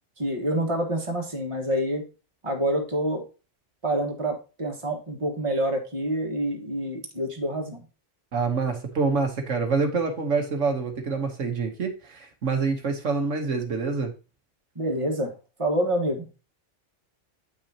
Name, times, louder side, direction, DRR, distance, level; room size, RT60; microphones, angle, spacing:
voice 1, 0.2-2.0 2.4-3.2 3.8-7.8 14.7-15.3 15.6-16.3, right 1 dB, 25° right, 1 dB, 1.6 m, -27 dB
voice 2, 8.3-14.1, right 4 dB, 80° right, 4 dB, 1.6 m, -26 dB
9.0 x 5.9 x 2.9 m, 0.31 s
omnidirectional pair, 1.3 m